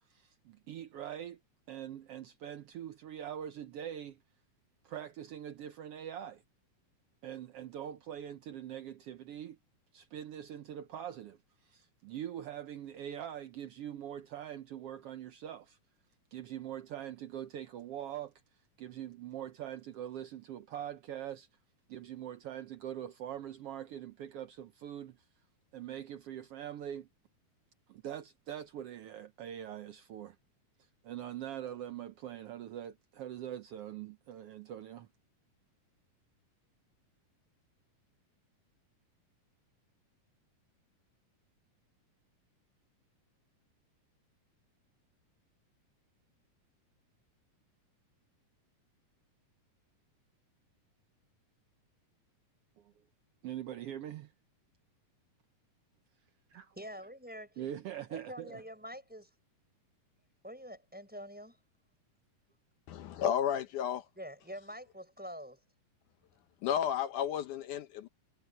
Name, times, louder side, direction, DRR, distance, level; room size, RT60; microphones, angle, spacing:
voice 1, 0.1-1.4 1.7-4.2 4.8-6.4 7.2-9.6 9.9-15.8 16.3-18.3 18.8-21.5 21.9-25.2 25.7-27.1 27.9-30.4 31.0-35.1 52.8-52.9 53.4-54.3 56.5-56.6 57.6-58.6, right 10 dB, 90° right, 1.3 m, -43 dB
voice 2, 56.8-57.7 58.1-59.3 60.4-61.6 64.2-65.6, equal, 5° right, 5.3 m, -46 dB
voice 3, 62.9-64.1 66.6-68.1, left 9 dB, 75° left, 2.4 m, -32 dB
omnidirectional pair, 3.8 m